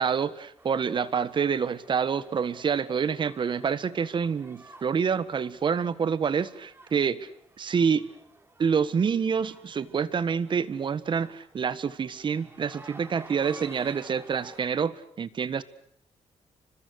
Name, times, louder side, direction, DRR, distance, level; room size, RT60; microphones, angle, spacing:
voice 1, 0.0-7.3 7.6-8.1 8.6-15.6, right 6 dB, 45° right, 16 dB, 1.6 m, -27 dB
sound 1, 0.6-14.6, right 3 dB, 20° right, 3.2 m, -52 dB
29.5 x 25.5 x 6.6 m, 0.67 s
cardioid pair, 125°, 11 cm